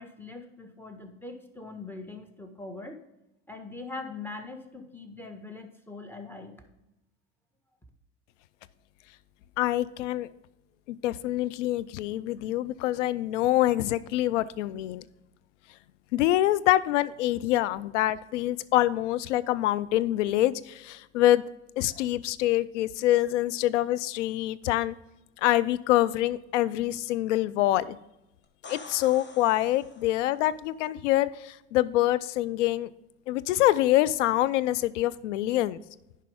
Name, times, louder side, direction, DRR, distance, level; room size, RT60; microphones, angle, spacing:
voice 1, 0.0-3.0 3.5-6.5, left 3 dB, 5° left, 4 dB, 1.6 m, -42 dB
voice 2, 9.6-10.3 10.9-15.0 16.1-21.4 21.8-24.9 25.4-28.0 28.7-32.9 33.3-35.8, left 15 dB, 80° left, 17 dB, 0.5 m, -25 dB
sound 1, 28.4-30.4 34.1-34.2, left 4 dB, 30° left, 1.4 m, -47 dB
10.5 x 5.3 x 3.6 m, 0.91 s
hypercardioid pair, 65°, 36 cm